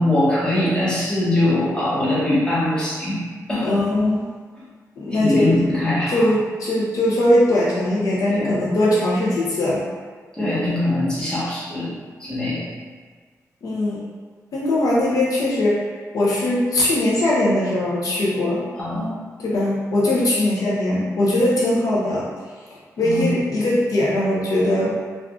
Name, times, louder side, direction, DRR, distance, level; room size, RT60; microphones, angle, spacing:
voice 1, 0.0-3.2 3.5-3.7 4.6-4.7 5.1-6.3 8.3-8.7 10.3-12.7 18.7-19.1 23.0-23.2, left 1 dB, 15° left, -9 dB, 1.1 m, -22 dB
voice 2, 3.6-4.3 5.0-5.6 6.1-9.8 13.6-14.0 14.5-15.8 16.1-18.7 19.4-22.3 23.0-25.0, left 1 dB, 70° left, -5 dB, 0.5 m, -20 dB
3.6 x 2.3 x 2.3 m, 1.5 s
wide cardioid pair, 105°, 6 cm